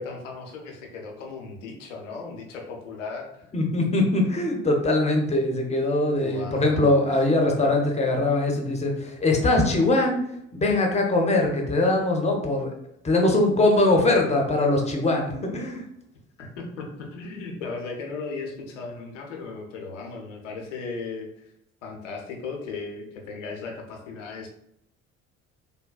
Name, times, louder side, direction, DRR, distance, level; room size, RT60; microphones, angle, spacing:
voice 1, 0.0-3.5 6.2-7.0 16.4-21.4 21.8-24.5, left 4 dB, 75° left, 2 dB, 0.6 m, -36 dB
voice 2, 3.5-10.2 10.5-12.7 13.0-15.8, left 2 dB, 20° left, 2 dB, 0.6 m, -22 dB
3.3 x 2.1 x 2.3 m, 0.78 s
figure-of-eight pair, 55°, 37 cm